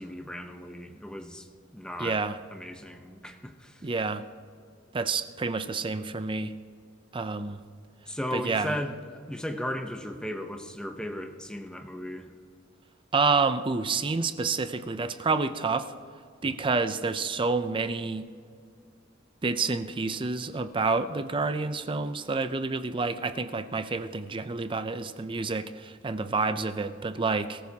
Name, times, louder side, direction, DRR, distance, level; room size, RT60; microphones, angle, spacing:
voice 1, 0.0-1.5 1.7-2.2 2.5-3.8 8.1-9.0 9.3-12.3, left 1 dB, 5° left, 5 dB, 0.8 m, -36 dB
voice 2, 2.0-2.4 3.8-4.2 4.9-6.5 7.1-7.6 8.3-8.8 13.1-15.9 16.4-18.3 19.4-27.6, right 4 dB, 25° right, 11 dB, 0.5 m, -28 dB
22.0 x 14.0 x 2.9 m, 2.2 s
head